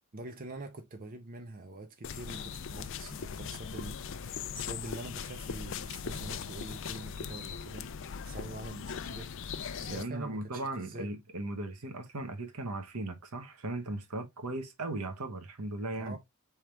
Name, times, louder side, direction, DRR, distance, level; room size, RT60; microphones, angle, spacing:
voice 1, 0.1-7.9 8.2-9.4 9.8-11.1 15.9-16.2, right 2 dB, 40° right, 0.8 m, -45 dB
sound 1, 2.0-10.0, left 6 dB, 55° left, 0.4 m, -39 dB
voice 2, 9.9-16.2, right 2 dB, 85° right, 1.1 m, -37 dB
4.5 x 3.6 x 3.3 m
head